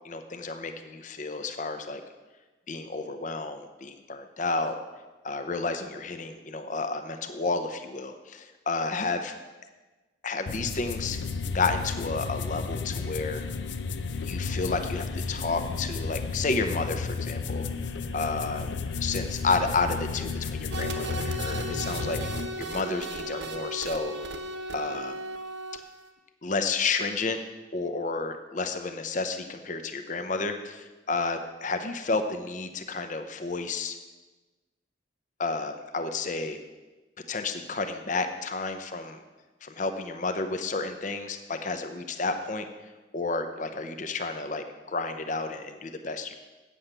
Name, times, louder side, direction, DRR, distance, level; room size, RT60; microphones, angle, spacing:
voice 1, 0.0-2.0 2.7-4.7 5.2-9.3 10.2-11.2 11.5-13.5 14.2-17.7 18.1-18.7 19.0-22.2 22.6-24.1 24.7-25.2 26.4-27.4 27.7-34.0 35.4-36.6 37.3-39.2 39.6-42.7 43.1-46.4, left 3 dB, 45° left, 7 dB, 0.7 m, -31 dB
sound 1, 10.5-22.5, left 4 dB, 80° left, 0.6 m, -33 dB
sound 2, 20.7-26.1, right 2 dB, 80° right, 1.0 m, -36 dB
8.8 x 7.8 x 6.6 m, 1.2 s
head